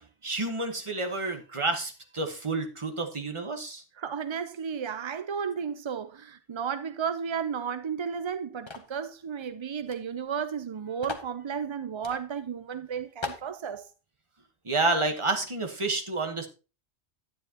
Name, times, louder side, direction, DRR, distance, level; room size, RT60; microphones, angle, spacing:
voice 1, 0.2-3.8 14.6-16.5, right 3 dB, 30° right, 1.2 m, -29 dB
voice 2, 4.0-13.9, right 7 dB, 50° right, 0.3 m, -33 dB
sound 1, 8.7-9.0 9.9-10.0 10.2-10.3 11.0-11.3 12.0-12.2 12.7-12.8 13.2-13.5, left 3 dB, 25° left, 0.9 m, -37 dB
10.0 x 9.4 x 2.9 m
omnidirectional pair, 1.1 m